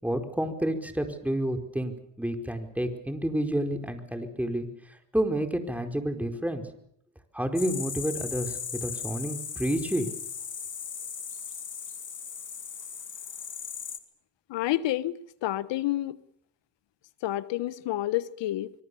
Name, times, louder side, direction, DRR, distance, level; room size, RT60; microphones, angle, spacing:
voice 1, 0.0-4.7 5.1-6.6 7.3-10.1, right 1 dB, 5° right, 4.8 m, -29 dB
sound 1, 7.6-14.0, left 7 dB, 45° left, 2.5 m, -37 dB
voice 2, 14.5-16.2 17.2-18.7, left 14 dB, 75° left, 1.3 m, -29 dB
25.0 x 23.0 x 7.1 m
supercardioid pair, 65°, 43 cm